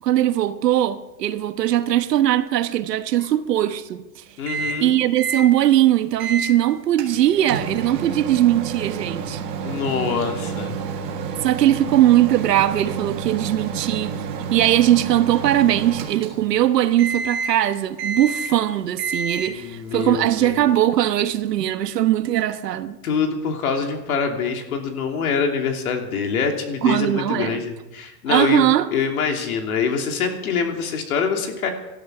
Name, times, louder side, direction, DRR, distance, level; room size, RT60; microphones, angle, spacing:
voice 1, 0.0-4.2 4.8-9.4 11.4-14.1 14.5-22.9 26.8-27.6 28.3-28.9, right 13 dB, 70° right, 1.3 m, -20 dB
voice 2, 4.4-4.9 9.6-10.7 19.5-20.6 23.0-31.7, left 6 dB, 55° left, 3.0 m, -25 dB
Microwave oven, 4.5-4.9 5.2-5.5 6.2-6.5 7.0-16.6 17.0-17.6 18.0-18.6 19.0-19.6, right 5 dB, 20° right, 1.5 m, -29 dB
19.0 x 12.5 x 6.1 m
supercardioid pair, 180°, 50 cm